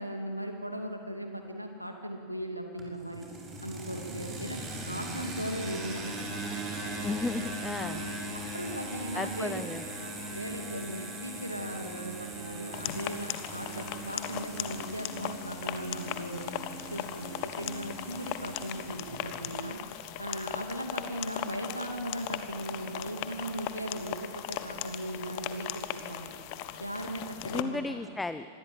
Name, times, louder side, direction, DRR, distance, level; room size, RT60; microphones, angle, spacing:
voice 1, 0.0-3.3 3.6-4.6 4.9-6.4 7.7-9.6 10.0-16.5 16.9-19.8 20.2-26.3 26.8-28.0, right 1 dB, 90° right, 4 dB, 2.6 m, -38 dB
sound 1, 2.8-19.5, right 1 dB, 20° right, 6.2 m, -40 dB
voice 2, 7.0-8.0 9.1-9.8 27.5-28.5, left 2 dB, 10° left, 12 dB, 0.7 m, -34 dB
sound 2, 12.7-27.6, left 12 dB, 45° left, 1.4 m, -38 dB
26.0 x 20.0 x 8.9 m, 2.7 s
figure-of-eight pair, 90°, 0 cm